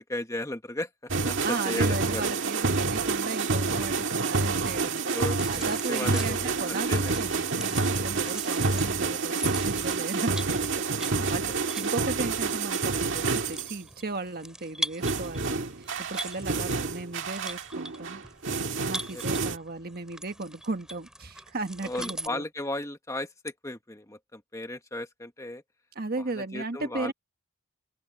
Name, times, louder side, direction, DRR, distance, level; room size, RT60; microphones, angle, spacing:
voice 1, 0.0-2.2 4.5-4.6 5.1-6.5 6.9-7.2 7.9-8.3 11.3-11.4 15.5-15.7 16.5-16.6 19.1-19.2 21.8-25.6 26.2-27.1, left 1 dB, 15° left, 1.6 m, -36 dB
sound 1, 1.1-13.8 15.0-19.6, right 4 dB, 60° right, 1.9 m, -28 dB
voice 2, 1.4-5.1 5.5-10.7 10.9-15.7 16.1-18.2 18.9-22.4 25.9-27.1, right 3 dB, 45° right, 1.5 m, -36 dB
sound 2, 5.3-22.3, right 1 dB, 5° right, 2.6 m, -42 dB
open air
head